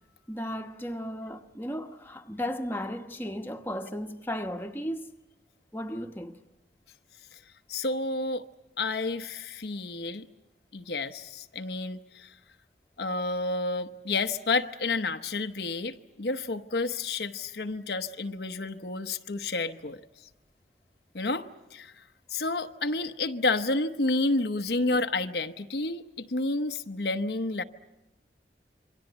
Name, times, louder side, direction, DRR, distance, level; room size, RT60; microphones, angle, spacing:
voice 1, 0.3-5.1 5.7-6.4, equal, 10° left, 1.2 m, -35 dB
voice 2, 7.7-8.4 8.8-10.3 10.7-12.3 13.0-20.0 21.1-21.9 22.3-27.6, left 3 dB, 65° left, 0.9 m, -30 dB
27.5 x 24.0 x 8.1 m
head